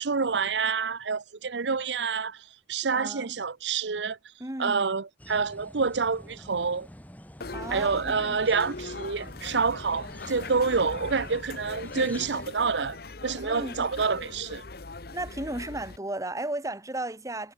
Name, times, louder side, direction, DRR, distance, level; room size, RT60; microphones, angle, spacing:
voice 1, 0.0-4.2 4.6-6.9 7.7-13.0 13.2-14.6, right 5 dB, 80° right, 0.8 m, -28 dB
voice 2, 2.9-3.4 4.4-4.8 7.5-8.4 13.4-13.9 15.1-17.5, right 1 dB, 20° right, 1.8 m, -35 dB
sound 1, 5.2-12.5, equal, 10° left, 5.7 m, -47 dB
sound 2, 7.4-16.0, left 3 dB, 60° left, 1.3 m, -40 dB
head